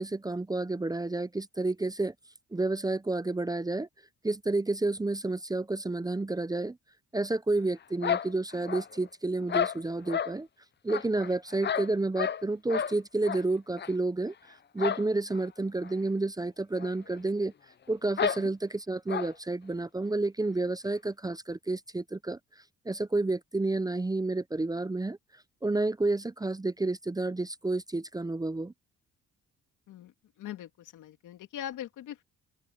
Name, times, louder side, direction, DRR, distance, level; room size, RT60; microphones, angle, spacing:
voice 1, 0.0-2.1 2.5-3.9 4.2-6.8 7.1-10.5 10.8-14.3 14.7-17.5 17.9-22.4 22.9-25.2 25.6-28.7, right 2 dB, 15° right, 0.7 m, -30 dB
sound 1, 8.0-9.1 9.5-10.3 10.9-12.4 12.7-12.9 13.2-13.4 13.8-13.9 14.8-15.1 15.3-15.4 15.8-15.9 16.8-16.9 17.1-17.2 18.2-18.4 19.1-19.3, left 8 dB, 35° left, 0.7 m, -31 dB
voice 2, 30.4-32.2, left 11 dB, 80° left, 2.7 m, -41 dB
open air
cardioid pair, 90°, 30 cm